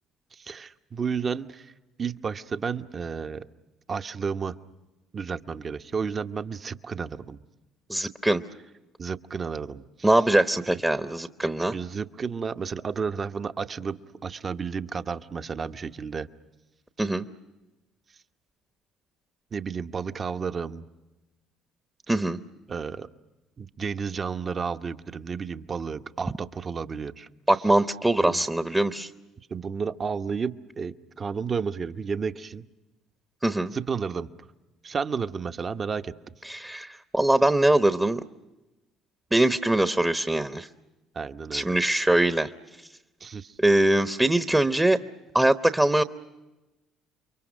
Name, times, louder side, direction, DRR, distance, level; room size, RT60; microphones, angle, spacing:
voice 1, 0.3-1.7 2.0-3.5 3.9-4.6 5.1-7.4 9.0-10.1 10.7-10.8 11.7-16.3 17.0-17.1 19.5-20.9 22.7-23.1 23.6-27.3 28.2-28.4 29.5-32.7 33.7-34.3 34.8-36.3 41.1-41.8 43.2-43.6, right 5 dB, 40° right, 9 dB, 0.9 m, -32 dB
voice 2, 7.9-8.4 10.0-11.7 17.0-17.2 22.1-22.4 27.5-29.1 33.4-33.7 36.5-38.2 39.3-40.7 41.5-42.5 43.6-45.0 45.3-46.0, right 1 dB, 10° right, 10 dB, 0.9 m, -22 dB
29.5 x 23.5 x 6.4 m, 1.1 s
supercardioid pair, 70°, 0 cm